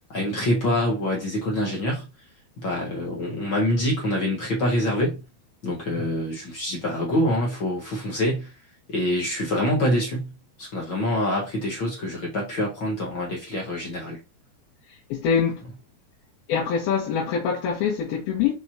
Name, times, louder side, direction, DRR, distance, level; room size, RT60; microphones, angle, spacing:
voice 1, 0.1-2.1 2.6-5.2 5.6-8.5 8.9-10.3 10.6-14.2, left 1 dB, 50° left, 1.5 m, -25 dB
voice 2, 15.1-15.6 16.5-18.5, left 7 dB, 85° left, 3.3 m, -24 dB
6.1 x 5.4 x 2.9 m
omnidirectional pair, 4.3 m